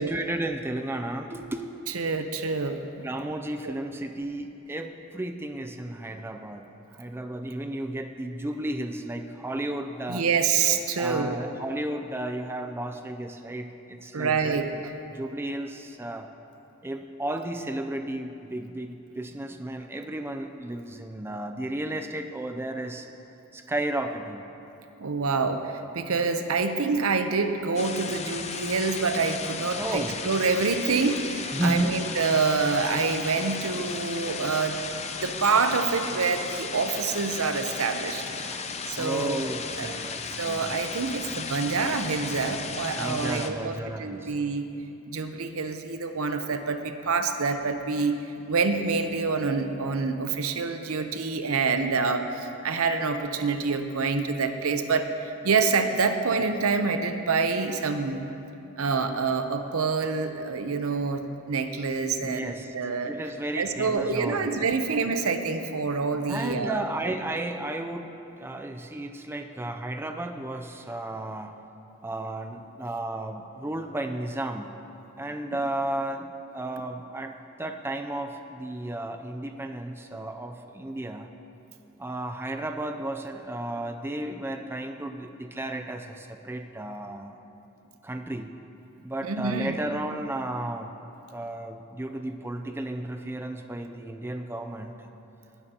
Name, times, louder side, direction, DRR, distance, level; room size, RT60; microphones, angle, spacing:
voice 1, 0.0-1.6 3.0-6.7 6.9-10.2 11.0-16.3 16.8-23.1 23.5-24.4 29.8-30.2 31.5-32.0 38.5-38.6 39.0-40.7 43.0-44.3 62.2-62.7 63.0-64.6 66.3-68.1 68.4-71.6 72.0-74.8 75.2-76.3 76.5-81.3 82.0-87.3 88.0-88.6 89.0-90.9 91.3-95.1, right 1 dB, 10° right, 6 dB, 0.4 m, -33 dB
voice 2, 1.9-3.1 3.6-3.7 10.1-11.3 14.1-14.7 25.0-38.2 38.9-39.4 39.8-39.9 40.4-44.7 45.1-48.2 48.5-58.3 58.8-62.4 62.7-63.1 63.6-67.1 89.2-89.8, right 4 dB, 75° right, 7 dB, 0.7 m, -27 dB
sound 1, 27.8-43.5, left 5 dB, 30° left, 0.7 m, -35 dB
19.0 x 12.0 x 2.9 m, 2.9 s
head